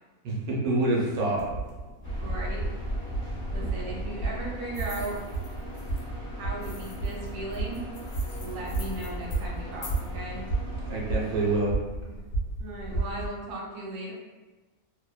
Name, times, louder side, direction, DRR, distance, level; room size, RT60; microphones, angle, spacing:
voice 1, 0.2-1.5 10.9-11.7, right 2 dB, 85° right, -3 dB, 1.1 m, -26 dB
sound 1, 1.3-13.3, right 3 dB, 45° left, 0.7 m, -34 dB
sound 2, 2.0-11.6, equal, 80° left, 0.3 m, -37 dB
voice 2, 2.2-2.7 3.5-5.2 6.4-7.8 8.4-10.4 12.6-14.1, right 2 dB, 55° right, -3 dB, 0.6 m, -37 dB
sound 3, 4.7-6.0 6.6-10.1, left 2 dB, 65° left, 1.1 m, -46 dB
2.9 x 2.1 x 2.3 m, 1.2 s
omnidirectional pair, 1.6 m